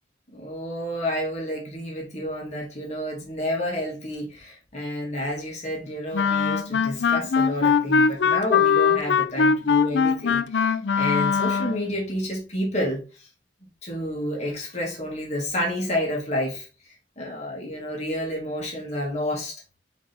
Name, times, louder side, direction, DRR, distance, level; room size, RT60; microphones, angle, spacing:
voice 1, 0.3-13.3 13.6-19.6, left 1 dB, 40° left, 2.4 m, -30 dB
Wind instrument woodwind instrument, 6.1-11.9, left 6 dB, 75° left, 0.4 m, -21 dB
5.4 x 5.1 x 3.6 m
head